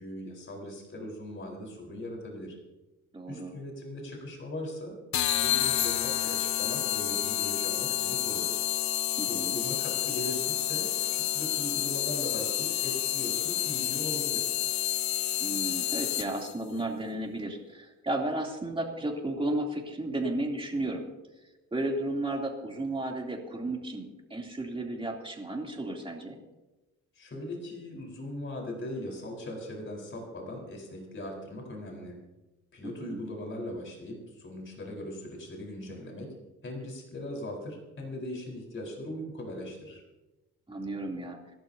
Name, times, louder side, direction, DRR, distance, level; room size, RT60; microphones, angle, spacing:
voice 1, 0.0-2.5 3.3-4.9 5.4-8.5 9.2-14.5 27.1-32.1 32.7-36.3 36.6-40.0, left 1 dB, 40° left, 0 dB, 4.5 m, -39 dB
voice 2, 3.1-3.5 9.2-9.6 15.4-21.0 21.7-26.4 32.8-33.2 40.7-41.4, right 1 dB, 20° right, 0 dB, 3.2 m, -33 dB
sound 1, 5.1-16.5, left 12 dB, 65° left, 0.8 m, -29 dB
25.5 x 12.0 x 2.9 m, 1.1 s
cardioid pair, 90°, 30 cm